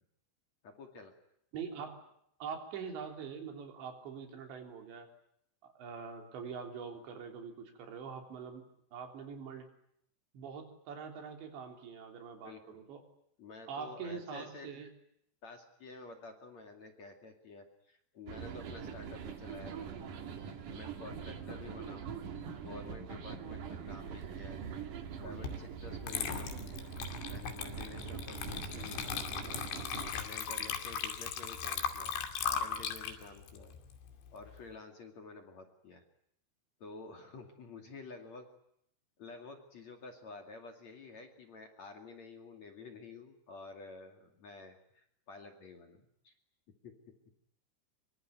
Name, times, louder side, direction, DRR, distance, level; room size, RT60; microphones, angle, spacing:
voice 1, 0.6-1.1 12.4-12.8 13.4-14.7 15.4-19.9 20.7-22.2 22.6-24.6 25.2-26.9 27.2-29.6 30.1-33.8 34.3-36.0 36.8-38.5 39.2-46.3 46.8-46.9, left 3 dB, 45° left, 4 dB, 3.1 m, -50 dB
voice 2, 1.5-2.0 2.4-5.1 5.6-8.6 8.9-9.7 10.3-13.0 13.7-14.9, right 6 dB, 70° right, 4 dB, 5.6 m, -44 dB
sound 1, 18.3-30.1, right 7 dB, 50° right, 3.1 m, -43 dB
Water / Liquid, 25.4-25.6 26.0-34.6, left 7 dB, 75° left, 4.7 m, -38 dB
25.0 x 24.0 x 9.3 m, 0.73 s
omnidirectional pair, 5.3 m